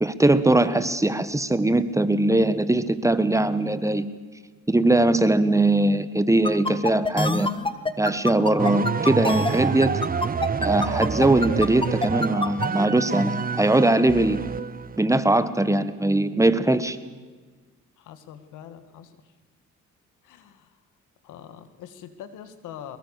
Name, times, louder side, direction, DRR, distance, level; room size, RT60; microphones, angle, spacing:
voice 1, 0.0-4.1 4.7-7.5 8.0-9.9 10.6-14.4 15.0-17.0, right 2 dB, 10° right, 13 dB, 1.4 m, -21 dB
sound 1, 6.4-12.7, left 2 dB, 15° left, 1.5 m, -26 dB
sound 2, 8.6-15.1, right 6 dB, 30° right, 0.8 m, -28 dB
voice 2, 18.0-19.1 20.2-20.8 21.2-23.0, left 9 dB, 90° left, 10 dB, 2.1 m, -43 dB
23.5 x 22.0 x 6.7 m, 1.4 s
cardioid pair, 90°, 30 cm